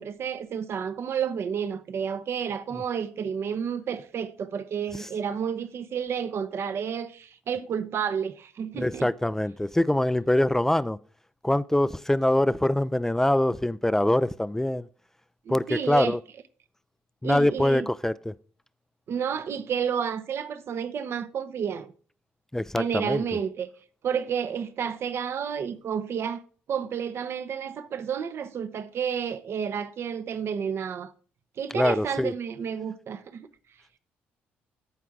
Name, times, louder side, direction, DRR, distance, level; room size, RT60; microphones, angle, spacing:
voice 1, 0.0-9.1 15.5-16.1 17.2-17.9 19.1-21.9 22.7-23.7 24.0-26.4 26.7-31.1 31.6-33.5, right 7 dB, 55° right, 0.8 m, -31 dB
voice 2, 8.8-11.0 11.4-14.9 15.5-16.2 17.2-18.3 22.5-23.2 31.7-32.3, left 1 dB, 10° left, 0.4 m, -24 dB
14.0 x 4.6 x 3.7 m
hypercardioid pair, 60°, 5 cm